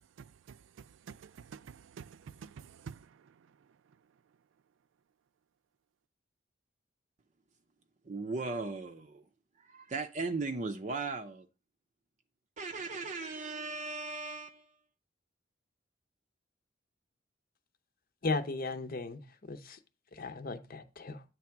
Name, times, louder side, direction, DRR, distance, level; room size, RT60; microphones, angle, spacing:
voice 1, 0.2-3.2, right 6 dB, 90° right, 0.4 m, -49 dB
voice 2, 8.0-9.3 9.6-11.5 12.6-14.8, right 3 dB, 40° right, 0.5 m, -37 dB
voice 3, 18.2-19.8 20.1-21.2, left 3 dB, 50° left, 0.8 m, -36 dB
8.5 x 3.5 x 5.8 m
head